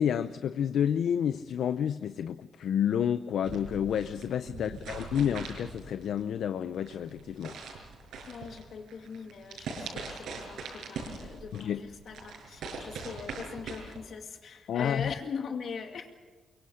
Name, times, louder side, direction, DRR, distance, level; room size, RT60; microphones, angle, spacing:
voice 1, 0.0-7.5 11.5-11.8 14.7-15.1, left 9 dB, 70° left, 12 dB, 0.6 m, -30 dB
sound 1, 3.4-14.0, right 4 dB, 80° right, 6.3 m, -42 dB
voice 2, 4.5-5.0 8.3-16.1, left 6 dB, 55° left, 4 dB, 2.4 m, -41 dB
23.5 x 23.5 x 6.5 m, 1.3 s
cardioid pair, 145°, 0 cm